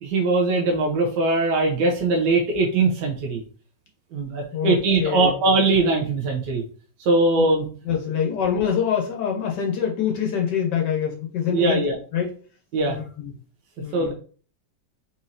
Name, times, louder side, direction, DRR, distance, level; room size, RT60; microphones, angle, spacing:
voice 1, 0.0-3.4 4.1-6.6 7.0-7.7 8.3-8.4 11.5-12.0 12.7-13.0 13.9-14.1, right 3 dB, 70° right, 1 dB, 1.4 m, -21 dB
voice 2, 4.5-5.3 7.8-11.8 12.1-12.4 12.9-13.3 13.8-14.1, left 8 dB, 70° left, 0 dB, 1.4 m, -25 dB
4.3 x 4.2 x 2.5 m, 0.40 s
omnidirectional pair, 1.9 m